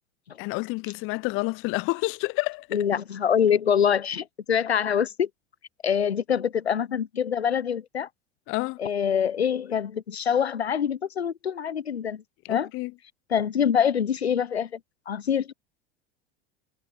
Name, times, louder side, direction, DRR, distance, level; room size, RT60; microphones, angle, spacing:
voice 1, 0.4-2.7 8.5-8.8 12.4-12.9, left 25 dB, 45° left, 0.6 m, -29 dB
voice 2, 2.7-5.3 5.8-8.1 8.8-12.2 12.5-12.7 13.3-14.8 15.1-15.5, left 8 dB, 90° left, 0.8 m, -25 dB
hypercardioid pair, 85°, 31 cm